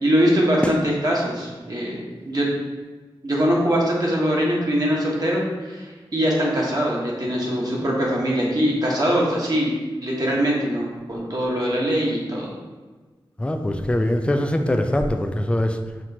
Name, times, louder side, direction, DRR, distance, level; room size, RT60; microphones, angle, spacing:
voice 1, 0.0-2.5 3.2-9.7 10.0-12.5, equal, 45° right, -3 dB, 1.1 m, -22 dB
voice 2, 13.4-15.8, left 1 dB, 10° left, 6 dB, 0.4 m, -22 dB
5.9 x 2.4 x 2.9 m, 1.3 s
wide cardioid pair, 55°, 9 cm